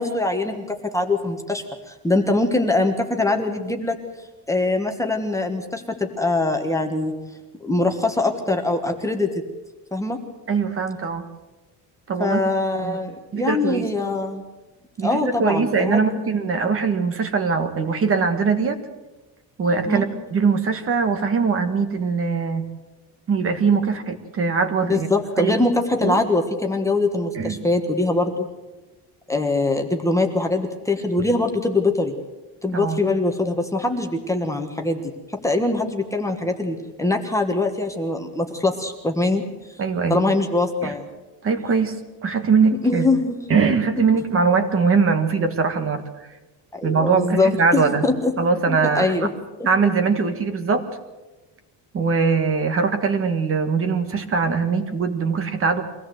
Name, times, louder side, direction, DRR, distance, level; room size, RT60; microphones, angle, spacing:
voice 1, 0.0-4.0 4.5-7.1 7.6-9.3 9.9-10.2 12.2-14.4 15.0-16.1 19.9-20.0 24.9-28.5 29.3-32.1 32.6-39.4 40.1-41.1 42.8-43.4 46.7-48.3 48.7-49.3, left 2 dB, 5° left, 3 dB, 1.4 m, -23 dB
voice 2, 10.5-11.2 12.1-12.4 12.8-13.0 13.3-13.9 15.0-18.8 19.6-22.6 23.3-25.1 25.4-25.6 26.0-26.2 27.3-27.6 32.7-33.0 39.8-40.2 40.8-40.9 41.4-43.1 43.5-46.0 46.8-48.0 48.4-49.1 49.6-50.8 51.9-55.8, right 5 dB, 30° right, 8 dB, 1.7 m, -21 dB
24.0 x 17.0 x 7.9 m, 1.1 s
cardioid pair, 175°, 42 cm